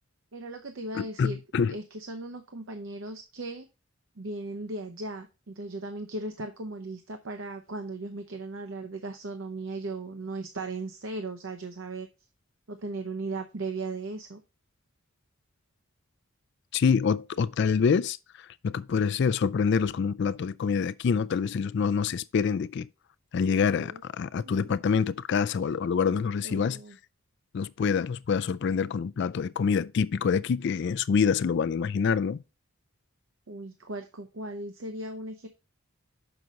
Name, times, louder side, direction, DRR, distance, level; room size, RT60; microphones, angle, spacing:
voice 1, 0.3-1.4 1.7-3.7 4.2-12.1 12.7-14.4 23.7-24.0 24.4-24.8 25.9-27.0 33.5-35.5, right 2 dB, 65° right, 0.8 m, -37 dB
voice 2, 0.9-1.7 16.7-22.9 23.3-26.8 27.5-32.4, left 6 dB, 55° left, 0.3 m, -26 dB
6.3 x 5.9 x 3.9 m
head